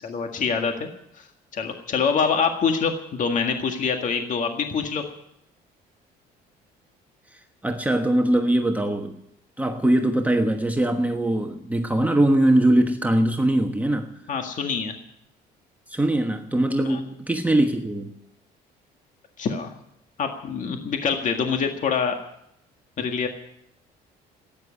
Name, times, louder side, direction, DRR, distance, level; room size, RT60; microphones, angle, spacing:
voice 1, 0.0-0.9 1.2-1.3 1.5-5.0 14.3-14.9 16.9-17.0 19.4-19.7 20.2-22.2 23.0-23.3, left 6 dB, 50° left, 4 dB, 1.8 m, -25 dB
voice 2, 7.6-9.2 9.6-14.1 15.9-18.1, right 1 dB, 10° right, 4 dB, 1.2 m, -21 dB
13.0 x 9.9 x 9.9 m, 0.78 s
cardioid pair, 110°, 17 cm